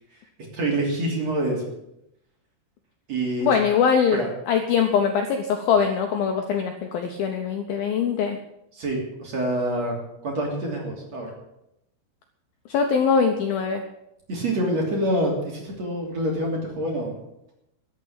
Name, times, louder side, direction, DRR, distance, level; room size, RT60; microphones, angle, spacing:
voice 1, 0.5-1.6 3.1-3.5 4.1-4.3 8.7-9.9 10.2-11.3 14.3-17.2, right 1 dB, 40° right, -1 dB, 3.6 m, -26 dB
voice 2, 3.4-8.4 12.7-13.8, left 6 dB, 75° left, 4 dB, 2.3 m, -22 dB
13.0 x 7.6 x 9.8 m, 0.84 s
omnidirectional pair, 5.4 m